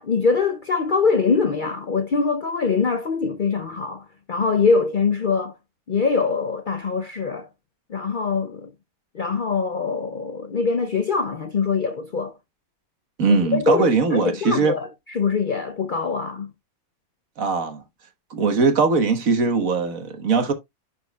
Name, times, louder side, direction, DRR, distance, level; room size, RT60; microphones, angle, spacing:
voice 1, 0.0-5.6 5.9-7.5 7.9-8.7 9.1-12.4 13.3-16.5, left 4 dB, 55° left, 0.6 m, -23 dB
voice 2, 13.2-14.7 17.4-17.8 18.3-20.5, right 4 dB, 70° right, 1.7 m, -20 dB
11.0 x 4.6 x 2.3 m
omnidirectional pair, 1.5 m